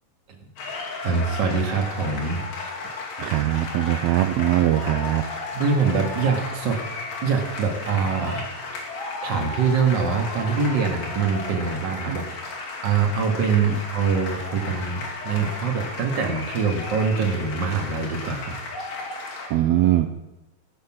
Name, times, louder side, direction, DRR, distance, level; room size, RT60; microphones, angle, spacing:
sound 1, 0.6-19.5, left 3 dB, 80° left, 4.5 m, -34 dB
voice 1, 1.0-2.4 5.5-6.8 7.2-8.6 9.2-12.2 12.8-18.6, right 5 dB, 40° right, 2 dB, 2.1 m, -24 dB
voice 2, 3.2-5.2 12.1-12.2 19.5-20.1, right 14 dB, 80° right, 6 dB, 1.6 m, -21 dB
16.5 x 6.6 x 7.5 m, 0.97 s
omnidirectional pair, 3.8 m